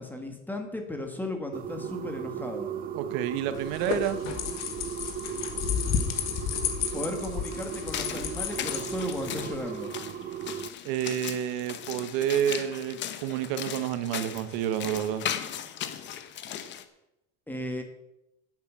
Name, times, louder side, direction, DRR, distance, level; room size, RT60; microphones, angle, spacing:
voice 1, 0.0-2.7 6.9-9.9 17.5-17.8, left 1 dB, 5° left, 4 dB, 1.5 m, -35 dB
sound 1, 1.5-10.7, right 9 dB, 25° right, 0.5 m, -37 dB
voice 2, 2.9-4.2 10.8-15.2, right 10 dB, 75° right, 11 dB, 1.3 m, -29 dB
sound 2, 3.5-9.6, left 8 dB, 50° left, 1.8 m, -32 dB
sound 3, 7.7-16.8, left 9 dB, 35° left, 0.9 m, -37 dB
11.0 x 8.4 x 7.4 m, 0.89 s
cardioid pair, 170°, 34 cm